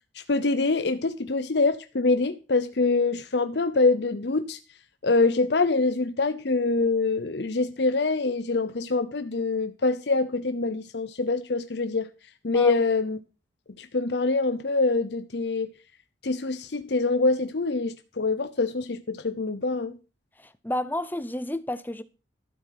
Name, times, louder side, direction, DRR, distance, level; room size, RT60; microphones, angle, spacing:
voice 1, 0.1-4.6 5.0-12.1 12.4-13.2 13.8-15.7 16.2-20.0, left 3 dB, 65° left, 0.8 m, -25 dB
voice 2, 20.4-22.0, left 1 dB, 10° left, 0.7 m, -31 dB
12.5 x 7.6 x 5.9 m
head